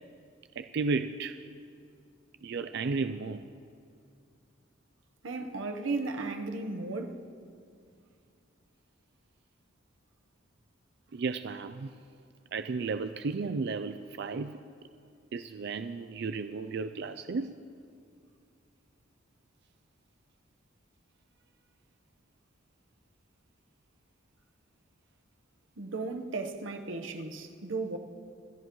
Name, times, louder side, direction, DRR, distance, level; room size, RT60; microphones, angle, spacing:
voice 1, 0.6-1.4 2.4-3.5 11.1-11.9 12.5-14.6 15.3-17.6, right 4 dB, 60° right, 0.4 m, -33 dB
voice 2, 5.2-7.2 25.8-28.0, right 3 dB, 80° right, 1.1 m, -35 dB
26.5 x 11.5 x 3.1 m
head